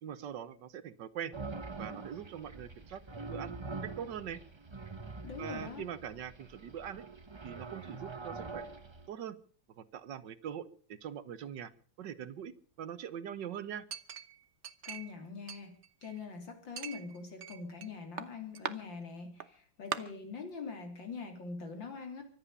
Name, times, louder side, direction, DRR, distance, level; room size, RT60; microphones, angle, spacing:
voice 1, 0.0-1.3 1.8-3.0 3.3-4.4 5.4-7.0 7.4-8.7 9.1-9.4 9.8-11.7 12.0-12.5 12.8-13.9, right 9 dB, 70° right, 14 dB, 1.6 m, -42 dB
sound 1, 1.3-9.1, right 3 dB, 25° right, 0.6 m, -44 dB
voice 2, 5.2-5.9 14.8-15.7 16.0-22.2, left 5 dB, 75° left, 5 dB, 3.9 m, -43 dB
Chink clink, 13.9-15.2 15.5-16.3 16.8-17.9 18.2-18.7 19.4-19.5 19.9-20.0, right 7 dB, 45° right, 1.0 m, -41 dB
24.0 x 8.7 x 6.8 m, 0.44 s
omnidirectional pair, 2.1 m